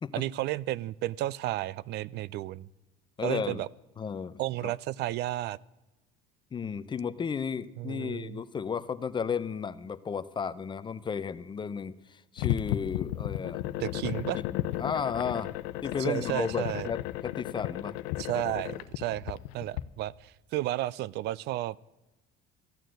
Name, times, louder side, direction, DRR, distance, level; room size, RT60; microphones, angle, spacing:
voice 1, 0.1-2.7 3.2-3.7 4.4-5.6 7.8-8.4 13.8-14.4 16.0-16.9 18.2-21.8, right 15 dB, 55° right, 23 dB, 0.4 m, -32 dB
voice 2, 3.2-3.6 4.0-4.7 6.5-13.6 14.4-15.5 15.8-18.0, left 6 dB, 25° left, 15 dB, 0.6 m, -34 dB
sound 1, 12.4-19.8, left 15 dB, 85° left, 0.7 m, -34 dB
14.5 x 9.1 x 7.6 m, 1.0 s
cardioid pair, 130°, 20 cm